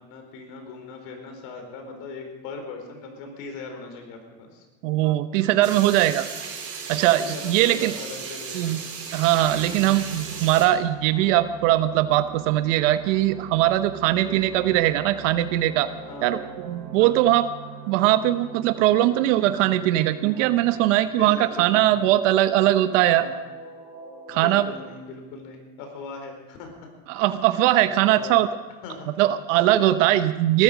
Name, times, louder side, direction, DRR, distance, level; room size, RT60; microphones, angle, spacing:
voice 1, 0.0-4.6 7.1-8.8 9.6-10.0 14.2-14.4 16.1-16.3 17.0-17.2 21.0-21.9 23.1-23.4 24.3-26.9 27.9-28.4 28.8-29.1 29.5-30.0, left 4 dB, 70° left, 4 dB, 4.6 m, -39 dB
voice 2, 4.8-6.3 6.9-7.9 8.5-8.8 9.1-15.9 16.2-16.4 16.6-17.5 17.9-23.3 24.3-24.7 27.1-28.5 29.2-30.6, right 14 dB, 85° right, 11 dB, 1.0 m, -20 dB
sound 1, 5.6-10.7, right 6 dB, 40° right, 4.1 m, -36 dB
sound 2, 9.3-20.4, right 6 dB, 60° right, 4.3 m, -43 dB
sound 3, 14.3-24.8, right 1 dB, 20° right, 6.7 m, -45 dB
20.5 x 13.0 x 5.0 m, 1.3 s
supercardioid pair, 130°, 37 cm